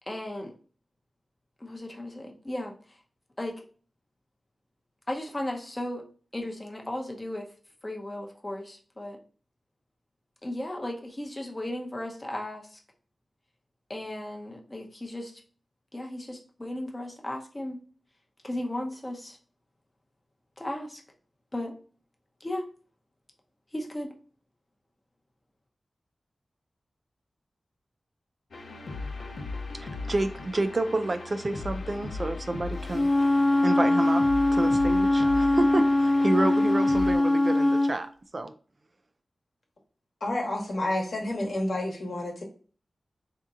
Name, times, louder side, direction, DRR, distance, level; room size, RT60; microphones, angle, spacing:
voice 1, 0.1-0.5 1.6-3.0 3.4-3.7 5.1-6.1 6.3-7.5 7.8-9.2 10.4-12.8 13.9-15.3 15.9-17.8 18.4-19.4 20.6-21.0 21.5-21.7 22.4-22.7 23.7-24.1, left 1 dB, 20° left, 0.7 m, -35 dB
sound 1, 28.5-37.2, left 3 dB, 85° left, 0.7 m, -38 dB
voice 2, 29.7-34.2 34.5-38.5, right 2 dB, 40° right, 0.3 m, -30 dB
Wind instrument woodwind instrument, 32.9-37.9, left 2 dB, 40° left, 0.9 m, -22 dB
voice 3, 40.2-42.4, left 1 dB, 60° left, 1.1 m, -29 dB
3.6 x 2.8 x 3.6 m
wide cardioid pair, 115°, 0 cm